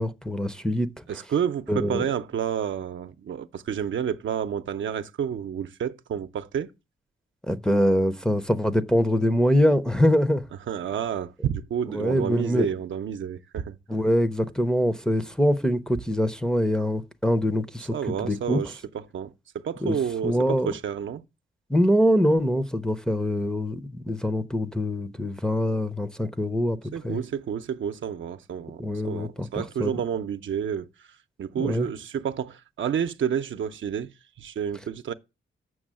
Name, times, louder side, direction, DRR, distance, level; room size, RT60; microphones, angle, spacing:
voice 1, 0.0-1.2 1.7-2.1 7.5-10.5 11.9-12.7 13.9-18.7 19.8-20.0 20.2-20.7 21.7-26.8 27.0-27.2 28.8-30.0 31.6-31.9, equal, 5° left, 0.6 m, -24 dB
voice 2, 1.1-6.7 10.7-13.8 17.9-18.7 19.1-21.2 26.9-30.9 31.4-34.1 34.4-35.1, right 8 dB, 70° right, 0.7 m, -30 dB
7.0 x 6.2 x 7.5 m
wide cardioid pair, 145°, 20 cm